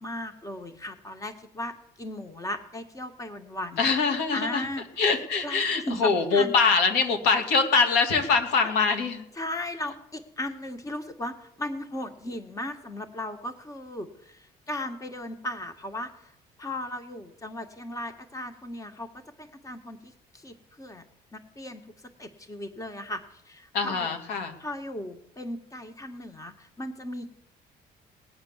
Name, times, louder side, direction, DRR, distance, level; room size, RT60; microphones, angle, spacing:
voice 1, 0.0-3.9 4.3-4.8 5.4-6.5 9.3-16.3 16.6-19.1 19.4-21.0 21.3-21.8 22.2-24.1 24.6-27.3, left 1 dB, 20° left, 7 dB, 1.6 m, -36 dB
voice 2, 3.8-4.7 5.0-9.2 23.7-24.5, left 4 dB, 90° left, 5 dB, 2.6 m, -23 dB
19.0 x 8.8 x 7.3 m, 0.80 s
cardioid pair, 110°, 17 cm